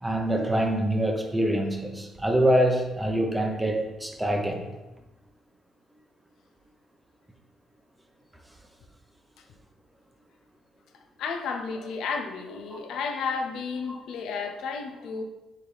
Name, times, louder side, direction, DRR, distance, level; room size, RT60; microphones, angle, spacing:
voice 1, 0.0-4.7 12.7-12.8 13.9-14.0, right 1 dB, 10° right, 2 dB, 0.7 m, -25 dB
voice 2, 11.2-15.2, left 5 dB, 80° left, 5 dB, 0.5 m, -32 dB
4.3 x 3.7 x 3.3 m, 1.0 s
cardioid pair, 90°, 0 cm